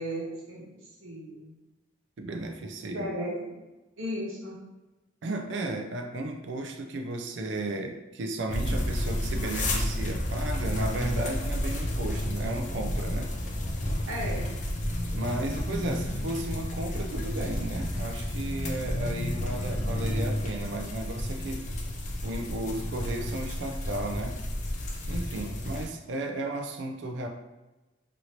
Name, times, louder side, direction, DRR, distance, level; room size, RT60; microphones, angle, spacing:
voice 1, 0.0-1.5 2.9-3.3 4.0-4.6 14.1-14.5, equal, 85° right, -5 dB, 1.0 m, -35 dB
voice 2, 2.2-3.1 5.2-13.3 15.1-21.6 22.2-24.4 25.0-27.3, right 2 dB, 65° right, 4 dB, 0.4 m, -34 dB
sound 1, 8.5-25.9, left 1 dB, 35° left, 0.4 m, -31 dB
3.0 x 2.6 x 2.8 m, 1.1 s
head